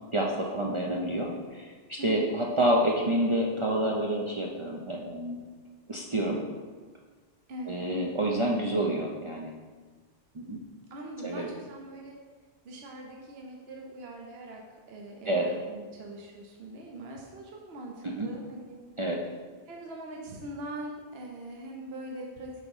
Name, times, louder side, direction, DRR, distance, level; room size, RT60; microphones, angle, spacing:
voice 1, 0.1-5.4 5.9-6.4 7.7-9.5 10.3-10.6 11.2-11.5 15.3-15.5 18.0-18.3 19.0-19.2, right 1 dB, 40° right, -2 dB, 0.5 m, -28 dB
voice 2, 10.9-12.2 12.6-18.8 19.7-22.5, right 1 dB, 65° right, 0 dB, 1.0 m, -42 dB
8.1 x 3.0 x 5.4 m, 1.4 s
omnidirectional pair, 1.2 m